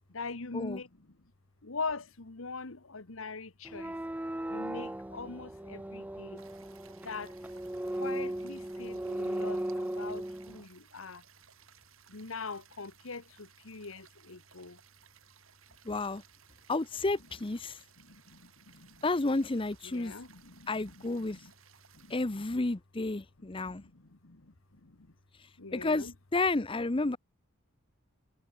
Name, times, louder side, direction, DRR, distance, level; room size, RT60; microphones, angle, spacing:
voice 1, 0.1-1.1 1.6-4.0 4.5-6.4 7.0-7.3 8.0-11.2 12.1-14.8 18.0-19.0 19.8-21.5 21.9-22.7 23.4-24.5 24.8-25.1 25.6-26.1, left 4 dB, 75° left, 1.5 m, -43 dB
sound 1, 3.7-10.6, right 1 dB, 5° right, 0.4 m, -37 dB
sound 2, 6.4-22.3, right 8 dB, 80° right, 5.3 m, -61 dB
voice 2, 15.9-16.2 16.7-17.8 19.0-20.1 20.7-21.4 22.1-23.8 25.7-27.2, left 2 dB, 25° left, 0.7 m, -31 dB
head